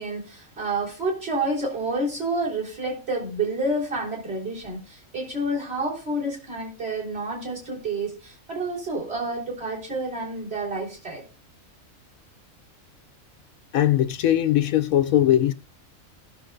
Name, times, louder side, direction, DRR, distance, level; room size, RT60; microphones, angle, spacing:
voice 1, 0.0-11.2, right 2 dB, 45° right, 4.0 m, -29 dB
voice 2, 13.7-15.5, left 12 dB, 80° left, 1.1 m, -20 dB
17.0 x 6.8 x 2.6 m
omnidirectional pair, 1.5 m